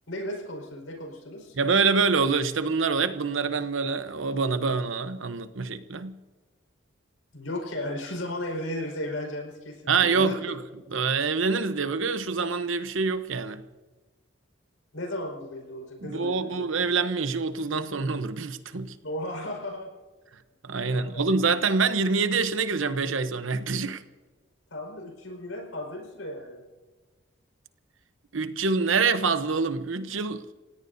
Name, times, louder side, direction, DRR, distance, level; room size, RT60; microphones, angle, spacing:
voice 1, 0.1-1.6 7.3-10.3 14.9-16.7 19.0-19.9 20.8-21.1 24.7-26.6, left 1 dB, 85° left, 5.0 m, -35 dB
voice 2, 1.5-6.2 9.9-10.6 10.9-13.6 16.0-18.9 20.6-24.0 28.3-30.4, right 4 dB, 75° right, 0.9 m, -26 dB
30.0 x 17.0 x 2.7 m
head